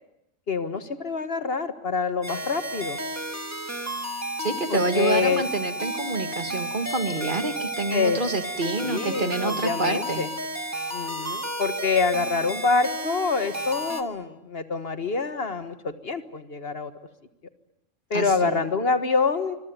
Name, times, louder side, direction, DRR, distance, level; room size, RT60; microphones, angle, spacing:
voice 1, 0.5-3.0 4.7-5.4 7.9-8.2 8.8-10.3 10.9-16.9 18.1-19.6, left 4 dB, 55° left, 11 dB, 1.6 m, -26 dB
sound 1, 2.2-14.0, right 1 dB, 15° right, 1.6 m, -32 dB
voice 2, 4.4-10.2 18.1-18.6, right 3 dB, 40° right, 9 dB, 1.8 m, -27 dB
25.5 x 22.5 x 9.3 m, 0.85 s
omnidirectional pair, 1.3 m